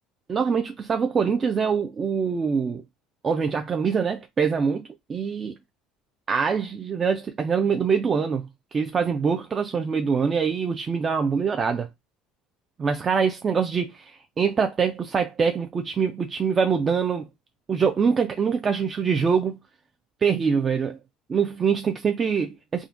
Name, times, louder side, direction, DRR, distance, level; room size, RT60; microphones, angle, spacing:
voice 1, 0.3-2.8 3.2-5.6 6.3-11.9 12.8-17.3 17.7-19.6 20.2-21.0 21.3-22.9, right 6 dB, 30° right, 0.3 m, -24 dB
3.6 x 2.1 x 2.4 m
supercardioid pair, 105°, 0 cm